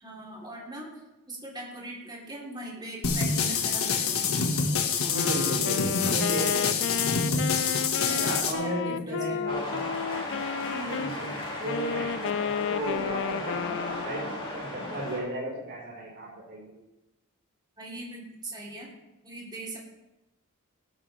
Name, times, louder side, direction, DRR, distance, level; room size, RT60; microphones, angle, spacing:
voice 1, 0.0-0.9 1.3-4.4 8.0-9.7 10.7-11.0 17.8-18.9 19.2-19.8, right 2 dB, 20° right, -4 dB, 3.4 m, -40 dB
sound 1, 3.0-8.5, left 5 dB, 75° left, 1.7 m, -26 dB
Wind instrument woodwind instrument, 5.0-11.1 11.6-14.3, left 7 dB, 55° left, 0.3 m, -32 dB
voice 2, 5.0-7.5 8.0-9.9 10.8-11.3 11.6-16.7, right 1 dB, 55° right, -7 dB, 4.5 m, -35 dB
sound 2, 9.5-15.2, left 2 dB, 25° left, 4.0 m, -35 dB
17.5 x 12.0 x 3.4 m, 0.98 s
head